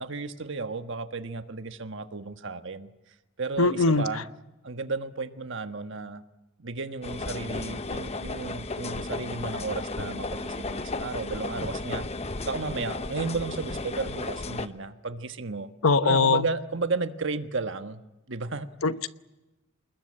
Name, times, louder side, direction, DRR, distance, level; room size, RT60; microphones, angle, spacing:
voice 1, 0.0-2.9 3.4-4.2 4.6-6.2 6.6-12.1 12.4-15.7 16.0-18.0 18.3-18.7, right 3 dB, 60° right, 9 dB, 1.4 m, -33 dB
voice 2, 3.6-4.2 15.8-16.5 18.8-19.1, left 4 dB, 85° left, 12 dB, 1.0 m, -22 dB
sound 1, 7.0-14.7, left 2 dB, 30° left, 1.0 m, -34 dB
28.0 x 20.5 x 8.8 m, 1.1 s
head